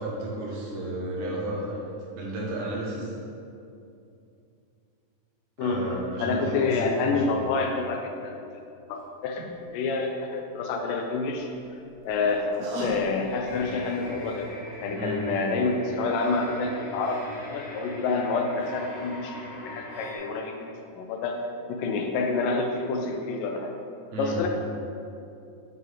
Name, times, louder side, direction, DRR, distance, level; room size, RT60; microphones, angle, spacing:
voice 1, 0.0-3.1 5.6-7.4 15.0-15.4 24.1-24.4, right 1 dB, 70° right, -3 dB, 2.1 m, -33 dB
voice 2, 6.2-8.4 8.9-11.5 12.0-14.5 14.8-23.7 24.2-24.5, left 3 dB, 80° left, 3 dB, 2.1 m, -28 dB
sound 1, 8.9-9.0 9.4-9.5 11.4-14.5 14.9-15.0, equal, 85° right, 2.9 m, -39 dB
sound 2, 13.2-20.2, left 1 dB, 65° left, 2.4 m, -42 dB
7.7 x 5.5 x 3.2 m, 2.6 s
omnidirectional pair, 3.9 m